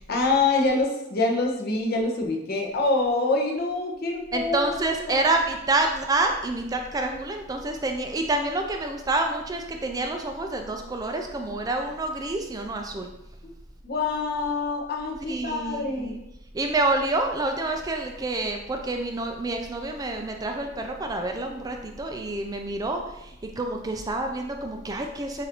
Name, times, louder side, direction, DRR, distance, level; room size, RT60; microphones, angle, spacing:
voice 1, 0.0-5.2 13.8-16.2, left 3 dB, 55° left, 1 dB, 0.8 m, -26 dB
voice 2, 4.3-13.1 15.3-16.2 16.5-25.4, right 2 dB, 20° right, 4 dB, 0.3 m, -28 dB
6.9 x 2.6 x 2.9 m, 0.88 s
head